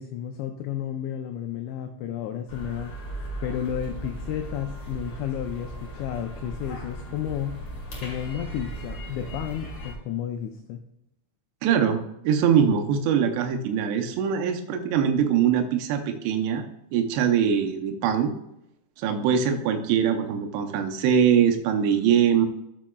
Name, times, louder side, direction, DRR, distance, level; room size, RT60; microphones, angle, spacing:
voice 1, 0.0-2.9 3.4-7.6 8.0-10.8, left 10 dB, 80° left, 5 dB, 2.6 m, -32 dB
sound 1, 2.5-9.9, right 1 dB, 55° left, 1.5 m, -37 dB
voice 2, 11.6-16.6 16.9-18.3 19.0-22.5, right 8 dB, 80° right, 4 dB, 2.5 m, -22 dB
12.5 x 7.3 x 2.3 m, 0.82 s
omnidirectional pair, 5.7 m